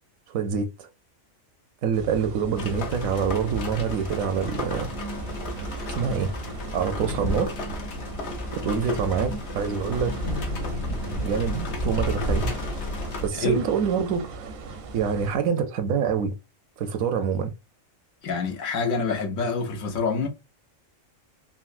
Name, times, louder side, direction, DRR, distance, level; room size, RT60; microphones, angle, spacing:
voice 1, 0.3-0.9 1.8-4.9 5.9-6.3 6.7-7.5 8.5-10.2 11.2-12.6 13.2-14.5 14.9-16.3 16.8-17.5, right 6 dB, 80° right, 1.0 m, -26 dB
sound 1, 1.9-15.3, right 3 dB, 60° right, 0.6 m, -38 dB
sound 2, 2.6-13.3, left 1 dB, 60° left, 0.9 m, -32 dB
voice 2, 18.2-20.3, left 4 dB, 80° left, 1.2 m, -26 dB
3.8 x 2.0 x 2.4 m
omnidirectional pair, 1.4 m